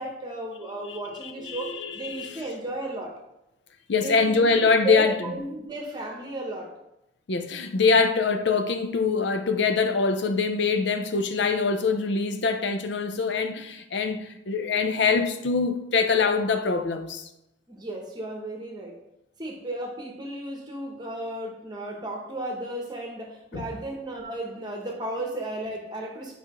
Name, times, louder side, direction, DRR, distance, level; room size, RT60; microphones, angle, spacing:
voice 1, 0.0-3.1 4.0-4.5 4.8-6.7 17.7-18.9 19.4-26.3, right 2 dB, 20° right, 1.0 m, -34 dB
voice 2, 0.9-2.4 3.9-5.2 7.3-17.3 23.5-23.6, left 4 dB, 70° left, 0.5 m, -24 dB
8.9 x 5.0 x 3.0 m
head